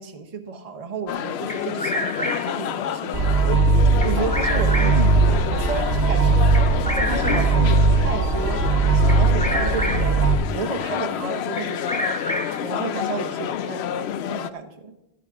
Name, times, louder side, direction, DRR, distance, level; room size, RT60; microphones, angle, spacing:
voice 1, 0.0-3.3 4.0-6.7 6.9-10.2 10.5-12.1 12.6-14.9, right 5 dB, 40° right, 5 dB, 0.9 m, -32 dB
sound 1, 1.1-14.5, left 9 dB, 85° left, 0.8 m, -29 dB
Bird vocalization bird call bird song, 1.5-2.7 4.0-5.1 6.5-7.7 9.1-10.2 11.6-12.7, left 1 dB, 10° left, 0.8 m, -29 dB
sound 2, 3.1-10.3, right 4 dB, 85° right, 1.4 m, -19 dB
14.0 x 12.0 x 3.6 m, 0.92 s
omnidirectional pair, 1.1 m